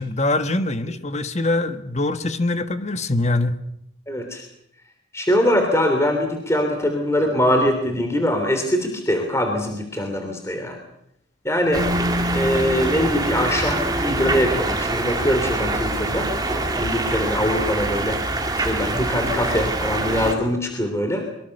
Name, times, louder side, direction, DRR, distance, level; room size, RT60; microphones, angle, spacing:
voice 1, 0.0-3.5, left 2 dB, 35° left, 10 dB, 1.4 m, -23 dB
voice 2, 4.1-4.4 5.1-10.8 11.4-11.8 12.3-18.2 18.5-21.2, left 1 dB, 15° left, 4 dB, 3.2 m, -22 dB
sound 1, 11.7-20.3, right 2 dB, 20° right, 2.4 m, -24 dB
24.0 x 23.5 x 6.7 m, 0.76 s
head